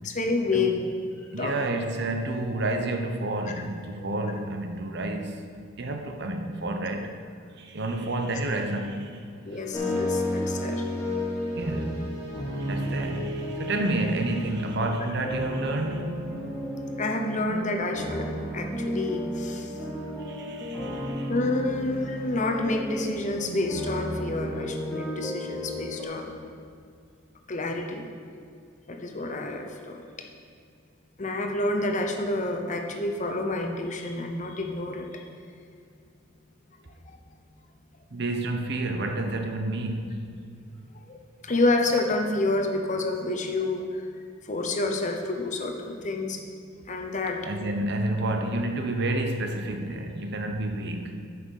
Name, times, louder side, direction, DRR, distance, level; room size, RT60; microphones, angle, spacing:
voice 1, 0.0-0.9 1.4-1.5 9.4-10.8 17.0-18.3 18.5-19.7 21.3-26.4 27.5-28.0 28.9-30.1 31.2-35.2 41.1-44.0 44.4-46.4 46.9-47.5, left 2 dB, 40° left, 3 dB, 0.9 m, -28 dB
voice 2, 1.3-5.5 5.8-7.1 7.6-9.2 11.5-12.1 12.6-16.3 20.3-21.3 38.1-40.2 47.3-51.2, right 2 dB, 55° right, 5 dB, 0.9 m, -30 dB
sound 1, 9.7-26.0, equal, 15° left, 2.3 m, -32 dB
9.3 x 5.8 x 6.5 m, 2.3 s
head